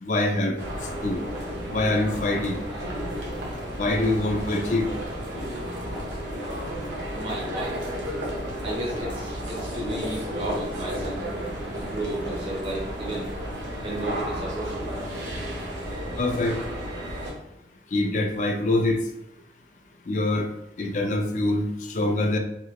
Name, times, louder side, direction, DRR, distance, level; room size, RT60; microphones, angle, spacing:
voice 1, 0.0-0.6 1.0-1.2 1.7-2.6 3.8-4.9 16.2-16.5 17.9-19.0 20.1-20.5 20.8-22.4, left 2 dB, 45° left, 4 dB, 0.4 m, -24 dB
sound 1, 0.6-17.3, equal, 90° right, 1.0 m, -32 dB
voice 2, 7.1-7.8 8.6-11.2 11.7-13.3 13.8-14.9, right 1 dB, 30° right, -4 dB, 0.5 m, -33 dB
3.0 x 2.7 x 3.0 m, 0.83 s
head